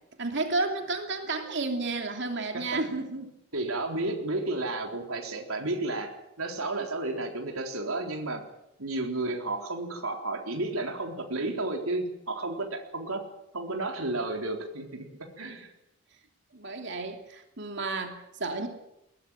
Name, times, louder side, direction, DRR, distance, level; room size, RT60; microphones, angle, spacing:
voice 1, 0.2-3.3 16.5-18.7, right 3 dB, 55° right, 4 dB, 3.0 m, -32 dB
voice 2, 2.5-2.8 3.5-8.4 8.8-13.2 13.5-15.7, right 2 dB, 90° right, 2 dB, 4.0 m, -32 dB
21.5 x 19.5 x 8.9 m, 0.85 s
head